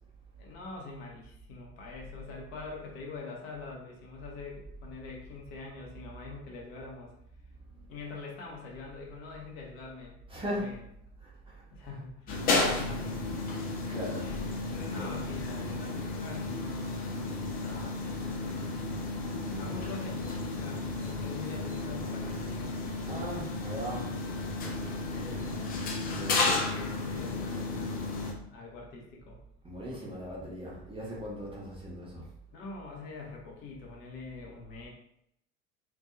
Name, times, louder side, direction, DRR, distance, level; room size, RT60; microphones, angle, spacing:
voice 1, 0.4-7.1 7.9-10.2 10.5-10.8 11.7-13.2 14.1-18.9 19.5-22.8 24.6-29.4 32.5-34.9, left 3 dB, 50° left, -1 dB, 0.7 m, -45 dB
voice 2, 10.3-10.7 11.2-12.0 13.9-14.3 15.0-15.2 19.4-19.8 23.1-24.1 25.7-25.9 26.1-26.4 29.6-32.3, equal, 15° right, -5 dB, 0.7 m, -39 dB
sound 1, 12.3-28.3, left 3 dB, 25° left, 0.4 m, -33 dB
2.6 x 2.2 x 2.4 m, 0.74 s
figure-of-eight pair, 70°, 39 cm